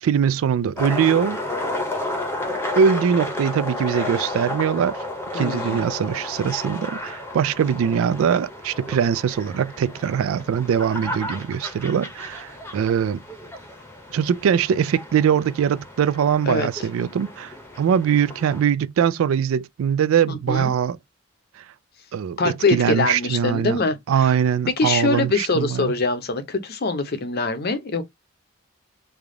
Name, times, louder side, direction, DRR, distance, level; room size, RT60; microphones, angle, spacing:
voice 1, 0.0-1.4 2.8-5.0 5.3-13.2 14.1-21.0 22.1-23.8 24.1-25.9, right 8 dB, 80° right, 0.3 m, -22 dB
sound 1, 0.8-18.6, left 1 dB, 10° left, 0.7 m, -32 dB
voice 2, 5.3-5.8 16.5-16.7 20.3-20.7 22.4-24.3 24.8-28.0, left 3 dB, 50° left, 0.6 m, -23 dB
3.3 x 2.3 x 3.7 m
head